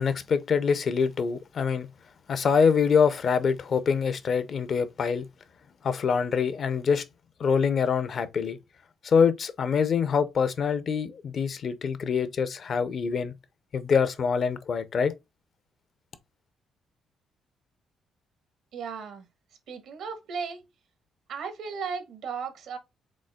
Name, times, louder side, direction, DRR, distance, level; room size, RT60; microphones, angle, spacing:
voice 1, 0.0-1.9 2.3-5.3 5.8-7.0 7.4-8.6 9.0-13.4 13.7-15.1, left 6 dB, 55° left, 0.6 m, -25 dB
voice 2, 18.7-19.3 19.7-20.7 21.3-22.8, right 6 dB, 75° right, 1.2 m, -35 dB
5.3 x 3.5 x 2.2 m
cardioid pair, 90°, 0 cm